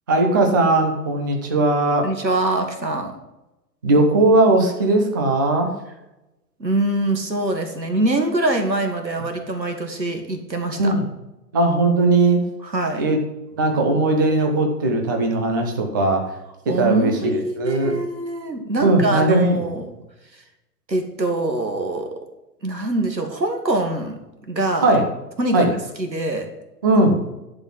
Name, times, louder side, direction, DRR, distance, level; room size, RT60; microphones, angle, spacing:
voice 1, 0.1-2.1 3.8-5.7 10.8-11.1 11.5-12.4 13.0-13.2 13.5-16.3 16.7-18.0 18.8-19.7 24.8-25.1 25.5-25.7 26.8-27.2, right 2 dB, 15° right, 3 dB, 0.3 m, -18 dB
voice 2, 2.0-3.1 6.6-10.9 12.6-13.0 16.7-19.9 20.9-22.1 22.6-24.2 24.5-24.9 25.4-25.7 26.0-26.5, right 2 dB, 90° right, 5 dB, 1.8 m, -24 dB
10.5 x 4.0 x 7.2 m, 0.97 s
figure-of-eight pair, 110°, 50 cm